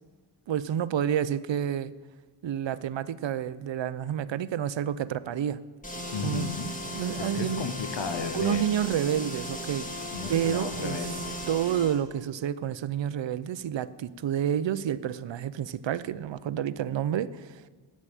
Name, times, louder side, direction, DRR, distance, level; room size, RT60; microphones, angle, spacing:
voice 1, 0.5-1.9 2.4-5.6 6.2-6.5 6.9-7.6 8.3-9.9 10.3-11.0 11.5-17.5, right 9 dB, 65° right, 16 dB, 0.5 m, -29 dB
sound 1, 5.8-12.0, equal, 15° left, 1.7 m, -36 dB
voice 2, 6.1-6.7 7.2-8.7 10.1-11.4, left 5 dB, 60° left, 9 dB, 1.0 m, -34 dB
9.9 x 7.5 x 9.1 m, 1.4 s
wide cardioid pair, 130°, 49 cm